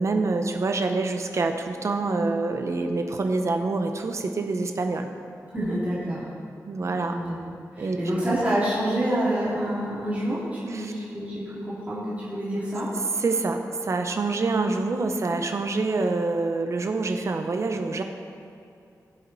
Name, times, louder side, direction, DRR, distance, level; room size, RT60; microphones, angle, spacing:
voice 1, 0.0-5.1 6.7-7.2 7.8-8.0 10.7-10.9 13.2-18.0, right 3 dB, 50° right, 5 dB, 0.8 m, -26 dB
voice 2, 5.5-6.2 7.1-7.4 7.8-12.9, right 1 dB, 20° right, -9 dB, 2.6 m, -27 dB
16.0 x 7.2 x 4.1 m, 2.6 s
wide cardioid pair, 175°, 7 cm